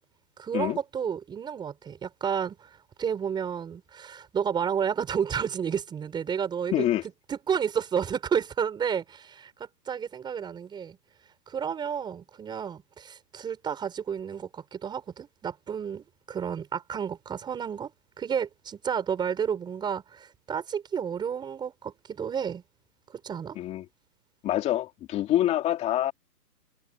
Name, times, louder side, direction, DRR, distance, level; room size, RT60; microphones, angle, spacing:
voice 1, 0.4-2.7 3.0-6.9 7.3-11.0 11.5-17.9 18.2-22.6 23.1-23.6, right 7 dB, 10° right, 6.5 m, -31 dB
voice 2, 6.7-7.0 23.6-23.8 24.4-26.1, left 13 dB, 15° left, 3.1 m, -26 dB
hypercardioid pair, 165°, 49 cm